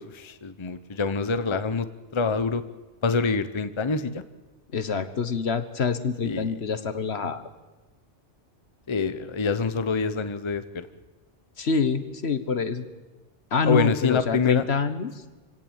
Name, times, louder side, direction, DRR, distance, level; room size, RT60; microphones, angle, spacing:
voice 1, 0.0-1.9 2.1-2.6 3.0-4.2 6.2-6.5 8.9-10.9 13.6-14.6, left 4 dB, 25° left, 12 dB, 0.8 m, -26 dB
voice 2, 4.7-7.4 11.6-12.8 13.5-15.1, left 5 dB, 60° left, 11 dB, 1.5 m, -26 dB
26.5 x 16.5 x 8.9 m, 1.2 s
omnidirectional pair, 1.2 m